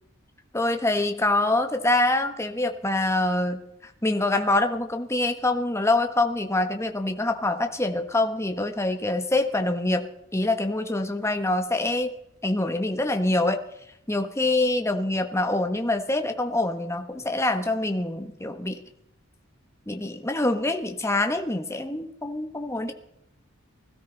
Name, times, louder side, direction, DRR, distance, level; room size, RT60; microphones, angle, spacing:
voice 1, 0.5-10.1 10.3-12.1 12.4-13.6 14.1-18.8 19.9-22.9, left 2 dB, 15° left, 6 dB, 1.4 m, -25 dB
21.0 x 13.5 x 4.1 m, 0.76 s
head